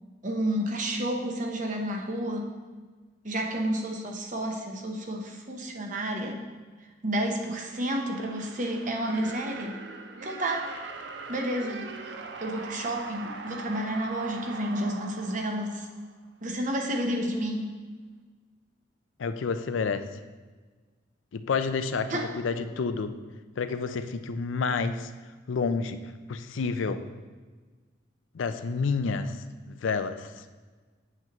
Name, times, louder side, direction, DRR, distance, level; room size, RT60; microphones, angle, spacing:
voice 1, 0.2-2.5 3.2-6.4 7.0-9.8 10.2-10.7 11.3-11.9 12.4-15.9 16.4-17.7 22.1-22.3, right 1 dB, 40° right, 2 dB, 0.9 m, -30 dB
sound 1, 7.5-16.3, right 4 dB, 65° right, 0.6 m, -42 dB
voice 2, 19.2-20.1 21.3-23.1 23.6-25.1 25.5-27.0 28.3-29.4 29.7-30.4, left 4 dB, 90° left, 10 dB, 0.4 m, -29 dB
7.8 x 7.4 x 3.0 m, 1.4 s
head